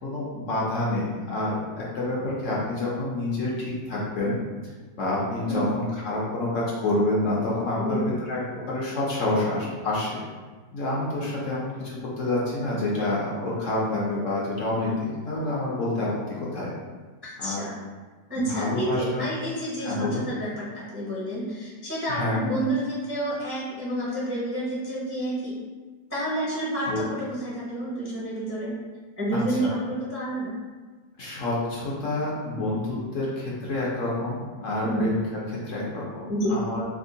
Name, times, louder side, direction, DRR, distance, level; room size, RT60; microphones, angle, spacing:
voice 1, 0.0-4.4 5.0-8.0 8.3-8.4 8.7-10.2 10.7-16.7 17.4-17.7 18.4-19.3 19.8-20.2 22.1-22.5 26.9-27.0 29.3-29.7 31.2-36.9, left 2 dB, 60° left, -5 dB, 0.9 m, -28 dB
voice 2, 17.2-17.8 18.3-25.5 26.1-28.7 29.2-30.5 34.8-35.1 36.3-36.6, right 1 dB, 15° right, -8 dB, 0.4 m, -29 dB
3.5 x 2.0 x 3.8 m, 1.4 s
omnidirectional pair, 1.7 m